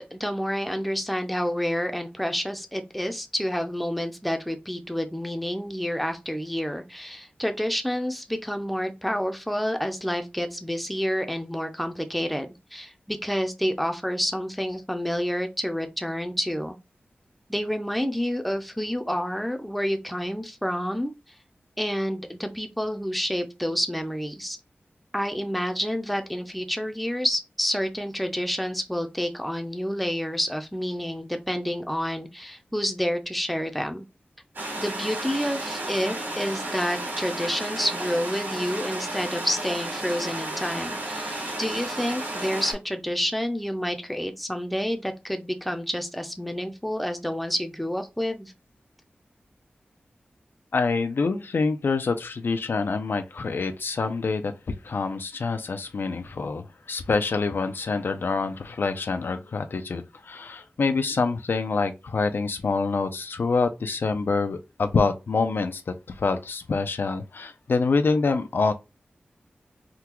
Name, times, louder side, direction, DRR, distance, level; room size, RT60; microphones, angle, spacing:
voice 1, 0.1-16.8 17.5-21.1 21.8-24.6 25.1-34.0 34.8-48.5, equal, ahead, 0.5 m, -29 dB
sound 1, 34.6-42.7, right 1 dB, 70° right, 1.7 m, -33 dB
voice 2, 50.7-54.5 54.8-68.7, left 4 dB, 75° left, 0.5 m, -26 dB
3.6 x 2.3 x 2.9 m
wide cardioid pair, 80°, 4 cm